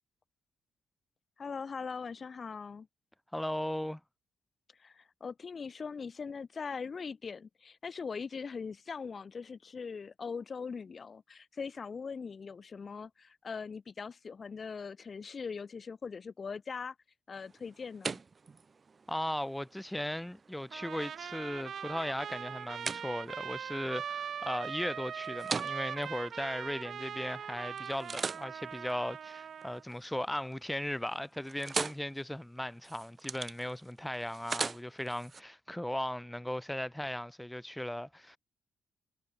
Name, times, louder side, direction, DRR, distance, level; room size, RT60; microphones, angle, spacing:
voice 1, 1.4-2.9 4.8-16.9 17.3-18.2, left 5 dB, 40° left, 1.5 m, -41 dB
voice 2, 3.3-4.0 19.1-38.4, left 1 dB, 5° left, 1.7 m, -37 dB
sound 1, 17.3-27.3 27.8-30.0 30.4-30.8 31.1-35.4, right 4 dB, 35° right, 1.0 m, -42 dB
Trumpet, 20.7-29.8, right 8 dB, 55° right, 2.4 m, -41 dB
cardioid pair, 90°, 0 cm